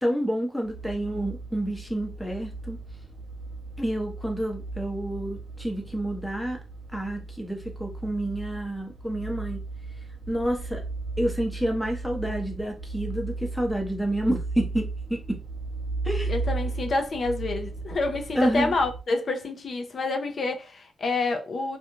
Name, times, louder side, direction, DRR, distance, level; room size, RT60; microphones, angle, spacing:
voice 1, 0.0-2.8 3.8-6.6 6.9-9.6 10.3-10.8 11.2-15.4 16.0-16.3 18.3-18.7, right 1 dB, 5° left, 0.8 m, -29 dB
sound 1, 0.6-19.0, right 3 dB, 40° right, 0.6 m, -36 dB
voice 2, 16.3-21.8, left 3 dB, 50° left, 0.6 m, -28 dB
2.5 x 2.3 x 3.0 m
cardioid pair, 105°, 0 cm